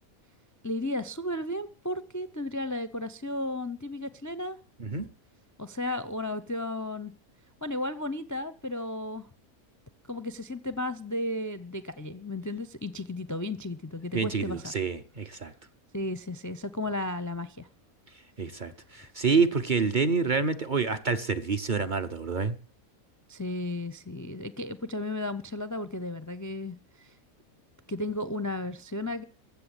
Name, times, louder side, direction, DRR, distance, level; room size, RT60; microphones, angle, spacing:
voice 1, 0.6-4.6 5.6-7.1 7.6-9.3 10.1-14.7 15.9-17.7 23.3-27.1 27.9-29.2, left 1 dB, 20° left, 0.5 m, -34 dB
voice 2, 14.1-15.5 18.4-22.6, right 4 dB, 40° right, 0.8 m, -27 dB
15.5 x 6.8 x 10.0 m
omnidirectional pair, 1.6 m